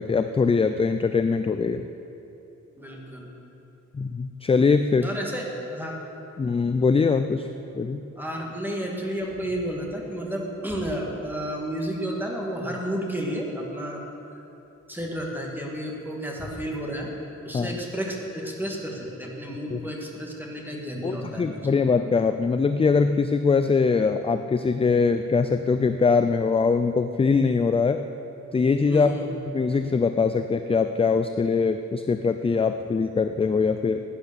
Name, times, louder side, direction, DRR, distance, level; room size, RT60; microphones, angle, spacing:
voice 1, 0.0-1.9 3.9-5.1 6.4-7.5 7.7-8.0 17.5-17.7 19.7-19.8 21.0-28.0 28.5-29.1 29.5-34.0, left 4 dB, 20° left, 8 dB, 0.3 m, -22 dB
voice 2, 2.8-3.3 5.0-6.0 8.2-14.0 14.9-17.1 17.4-21.7 28.9-29.4, equal, 5° right, -2 dB, 2.0 m, -31 dB
16.5 x 9.8 x 6.9 m, 3.0 s
wide cardioid pair, 180°, 30 cm